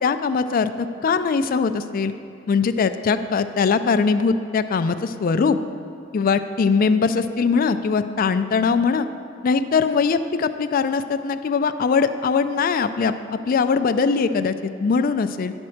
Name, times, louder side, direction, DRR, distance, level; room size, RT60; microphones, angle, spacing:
voice 1, 0.0-2.1 2.5-5.6 6.1-9.1 9.4-13.1 13.5-15.5, left 5 dB, 45° left, 10 dB, 0.3 m, -21 dB
10.5 x 4.4 x 6.3 m, 2.6 s
head